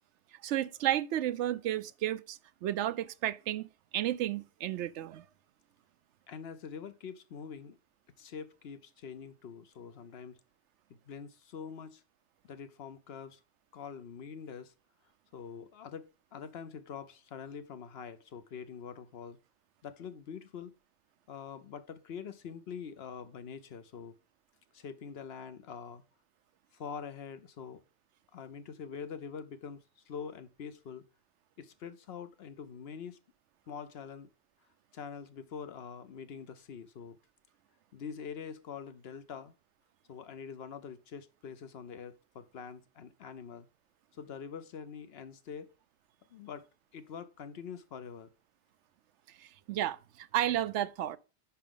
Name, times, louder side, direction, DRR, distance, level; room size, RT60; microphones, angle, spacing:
voice 1, 0.4-3.7 3.9-5.2 49.4-51.2, right 12 dB, 85° right, 0.9 m, -32 dB
voice 2, 6.3-7.8 8.2-10.4 11.1-12.0 12.4-13.4 13.7-14.7 15.3-19.4 19.8-20.7 21.3-24.1 24.7-26.0 26.7-27.8 28.3-31.0 31.6-33.2 33.7-34.3 34.9-37.2 37.9-39.5 40.1-43.7 44.1-45.7 46.3-46.7 46.9-48.3, left 6 dB, 65° left, 1.0 m, -45 dB
10.0 x 5.0 x 3.7 m
omnidirectional pair, 1.2 m